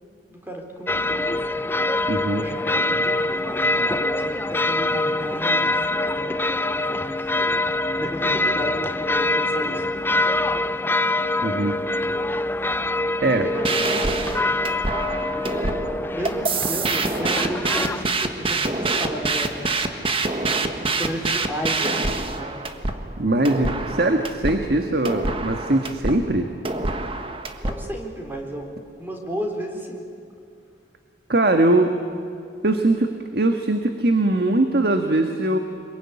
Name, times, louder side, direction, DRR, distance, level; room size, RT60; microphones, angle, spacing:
voice 1, 0.3-1.6 2.3-7.1 7.9-9.9 13.4-14.5 16.1-19.7 20.8-22.6 27.6-28.7 29.0-30.0, equal, 10° right, 1 dB, 4.0 m, -33 dB
sound 1, 0.9-18.0, left 2 dB, 10° left, 0.6 m, -24 dB
voice 2, 2.1-2.4 11.4-11.8 13.2-13.5 23.2-26.5 31.3-31.9 32.6-35.6, right 2 dB, 60° right, 5 dB, 1.6 m, -21 dB
sound 2, 13.6-27.9, right 3 dB, 30° right, 1.5 m, -26 dB
26.5 x 22.5 x 9.9 m, 2.5 s
head